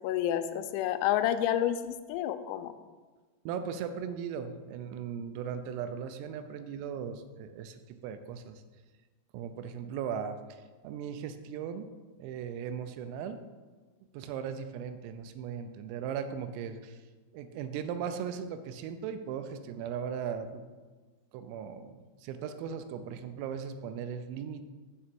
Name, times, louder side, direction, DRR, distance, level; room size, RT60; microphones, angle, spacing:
voice 1, 0.0-2.7, left 11 dB, 85° left, 10 dB, 3.3 m, -29 dB
voice 2, 3.5-8.6 9.3-11.9 12.2-13.4 14.1-17.0 17.3-20.6 21.3-24.6, right 7 dB, 85° right, 9 dB, 3.3 m, -38 dB
7.7 x 7.3 x 5.2 m, 1.3 s
omnidirectional pair, 6.0 m